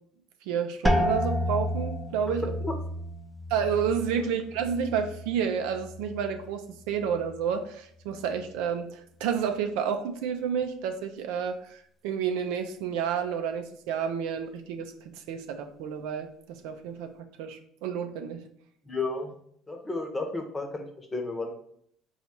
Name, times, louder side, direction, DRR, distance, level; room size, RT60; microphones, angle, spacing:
voice 1, 0.5-2.5 3.5-18.4, right 7 dB, 80° right, 6 dB, 0.4 m, -30 dB
sound 1, 0.9-6.5 6.8-7.5 8.1-8.5, left 1 dB, ahead, 0.5 m, -31 dB
voice 2, 18.8-19.4 19.7-21.6, left 3 dB, 20° left, 4 dB, 0.9 m, -33 dB
4.0 x 2.4 x 4.3 m, 0.67 s
supercardioid pair, 80°, 0 cm